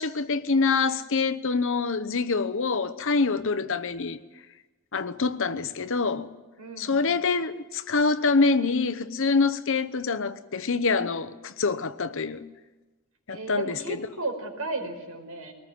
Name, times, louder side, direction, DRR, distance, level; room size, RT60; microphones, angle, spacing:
voice 1, 0.0-4.2 4.9-6.3 6.8-12.4 13.3-13.7, left 4 dB, 60° left, 1.0 m, -25 dB
voice 2, 6.6-7.2 13.3-15.5, right 3 dB, 90° right, 5.2 m, -34 dB
22.5 x 19.5 x 9.4 m
head